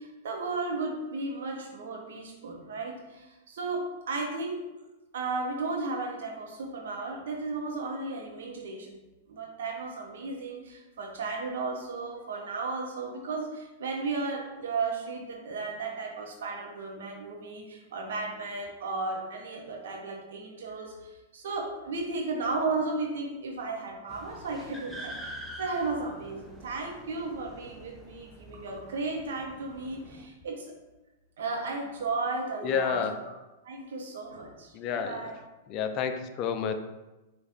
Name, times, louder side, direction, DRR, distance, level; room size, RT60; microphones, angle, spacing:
voice 1, 0.0-4.6 5.1-8.9 9.3-30.7 31.4-33.3 33.6-35.4, right 3 dB, 65° right, 0 dB, 0.9 m, -34 dB
sound 1, 24.1-30.3, equal, ahead, 0.7 m, -46 dB
voice 2, 32.6-33.2 34.7-35.4 35.7-36.7, left 7 dB, 40° left, 7 dB, 0.5 m, -30 dB
4.8 x 2.5 x 4.1 m, 1.1 s
figure-of-eight pair, 100°, 0 cm